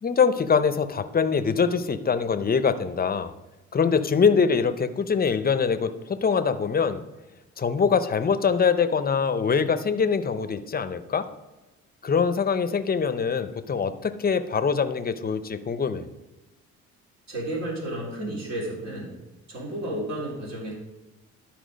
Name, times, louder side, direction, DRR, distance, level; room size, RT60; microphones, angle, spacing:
voice 1, 0.0-3.3 3.7-7.0 7.6-11.3 12.0-16.1, left 6 dB, 30° left, 11 dB, 0.6 m, -23 dB
voice 2, 17.3-19.1 19.5-20.7, right 1 dB, 60° right, -4 dB, 3.4 m, -32 dB
12.5 x 4.5 x 5.2 m, 1.1 s
cardioid pair, 90°, 30 cm